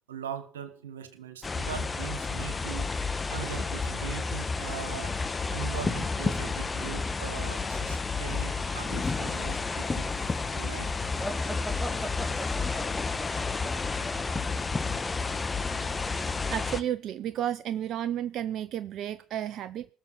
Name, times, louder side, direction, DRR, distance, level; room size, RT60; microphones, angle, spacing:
voice 1, 0.1-2.9 3.3-5.2 5.5-10.2 10.5-10.9 14.2-14.3, right 9 dB, 90° right, 11 dB, 1.8 m, -40 dB
sound 1, 1.4-16.8, left 4 dB, 25° left, 1.5 m, -31 dB
sound 2, 11.2-14.9, equal, ahead, 3.5 m, -39 dB
voice 2, 16.2-19.9, right 11 dB, 60° right, 15 dB, 0.6 m, -32 dB
19.0 x 7.1 x 7.9 m, 0.42 s
hypercardioid pair, 60°, 0 cm